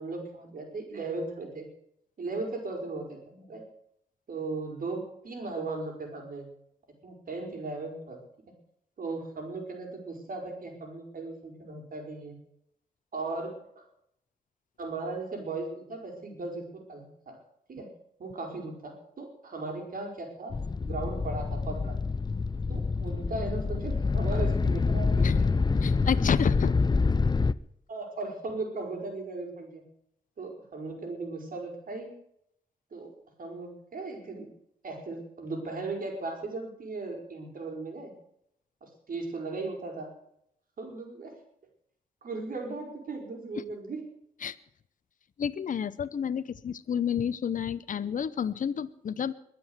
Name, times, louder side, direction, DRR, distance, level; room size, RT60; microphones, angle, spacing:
voice 1, 0.0-1.7 2.2-3.6 4.3-6.5 7.0-8.2 9.0-12.3 13.1-13.8 14.8-17.4 17.7-17.9 18.2-22.0 22.7-25.5 27.9-29.8 30.4-32.1 32.9-33.1 33.4-34.5 34.8-38.1 38.8-40.1 40.8-41.3 42.2-44.0, right 3 dB, 65° right, 2 dB, 5.2 m, -37 dB
sound 1, 20.5-27.5, left 4 dB, 25° left, 0.6 m, -26 dB
voice 2, 25.8-26.8 43.6-43.7 44.4-44.5 45.4-49.3, left 7 dB, 55° left, 13 dB, 0.8 m, -30 dB
22.0 x 7.8 x 8.0 m, 0.75 s
cardioid pair, 70°, 16 cm